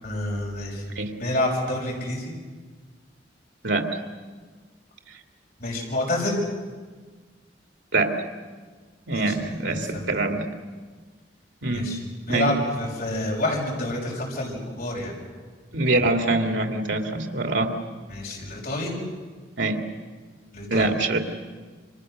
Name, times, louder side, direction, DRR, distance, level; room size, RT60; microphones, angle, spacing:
voice 1, 0.0-0.8 1.2-2.3 5.6-6.4 9.1-10.2 11.7-12.0 12.3-15.1 18.1-18.9 20.5-20.9, left 1 dB, 55° left, -2 dB, 6.4 m, -28 dB
voice 2, 3.6-4.0 7.9-8.2 9.1-10.5 11.6-11.9 12.3-12.5 15.7-17.7 19.6-19.8 20.7-21.2, right 2 dB, 80° right, 5 dB, 2.5 m, -24 dB
28.5 x 26.0 x 6.6 m, 1.4 s
head